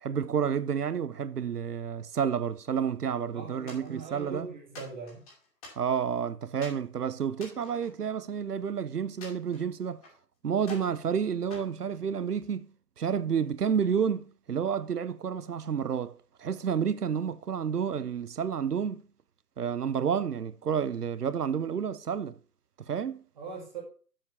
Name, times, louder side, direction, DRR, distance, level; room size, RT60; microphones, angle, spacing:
voice 1, 0.0-4.5 5.8-10.0 10.4-12.7 13.0-19.0 19.6-22.4 22.8-23.2, right 7 dB, 65° right, 0.8 m, -30 dB
voice 2, 3.3-5.2 23.4-23.8, right 5 dB, 25° right, 2.0 m, -40 dB
sound 1, 3.7-4.3 4.7-6.2 6.6-6.9 7.3-8.7 9.2-10.2 10.6-11.0 11.5-12.5, left 3 dB, 20° left, 2.8 m, -49 dB
7.5 x 7.3 x 5.6 m
figure-of-eight pair, 155°, 50 cm